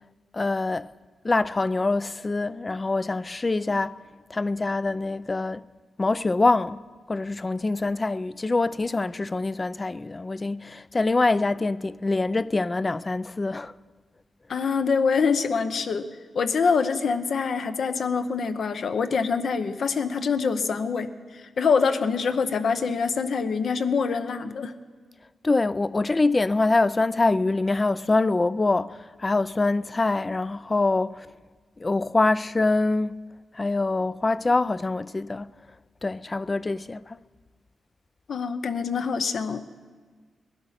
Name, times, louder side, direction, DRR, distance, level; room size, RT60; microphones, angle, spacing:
voice 1, 0.3-0.9 1.2-4.0 4.3-5.6 6.0-13.7 25.4-31.3 31.8-33.2 33.5-35.5 36.0-37.2, left 3 dB, 30° left, 0.3 m, -24 dB
voice 2, 14.5-16.1 16.3-24.7 38.3-39.6, left 5 dB, 70° left, 0.8 m, -25 dB
19.0 x 11.5 x 5.7 m
cardioid pair, 80°, 0 cm